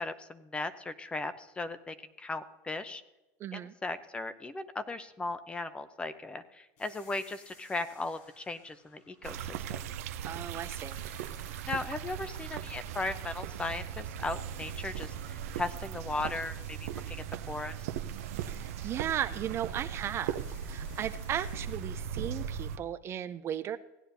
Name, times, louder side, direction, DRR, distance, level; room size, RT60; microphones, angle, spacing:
voice 1, 0.0-3.0 3.5-9.8 11.7-17.8, left 2 dB, 15° left, 12 dB, 0.6 m, -37 dB
voice 2, 3.4-3.7 10.2-11.0 18.5-20.4 20.7-23.8, right 10 dB, 35° right, 12 dB, 0.4 m, -36 dB
sound 1, 6.8-10.1 10.5-13.9 14.3-21.8, left 3 dB, 85° left, 4.5 m, -60 dB
sound 2, 9.2-22.8, right 8 dB, 90° right, 0.6 m, -38 dB
16.5 x 9.7 x 2.7 m, 1.0 s
supercardioid pair, 135°, 8 cm